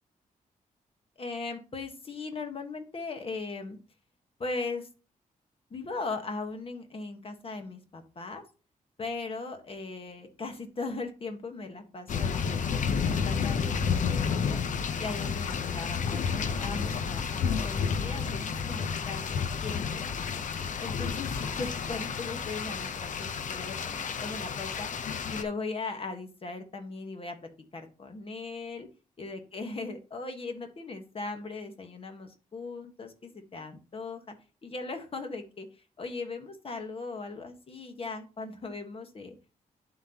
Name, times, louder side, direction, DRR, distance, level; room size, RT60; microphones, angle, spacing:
voice 1, 1.2-3.8 4.4-4.9 5.7-8.4 9.0-12.7 13.0-14.6 15.0-20.4 20.8-24.9 25.3-27.4 27.7-28.9 29.2-34.3 34.6-35.7 36.0-39.3, left 3 dB, 40° left, 5 dB, 1.4 m, -38 dB
sound 1, 12.1-25.4, left 6 dB, 60° left, 0.7 m, -31 dB
11.5 x 4.0 x 2.9 m, 0.33 s
cardioid pair, 115°, 15 cm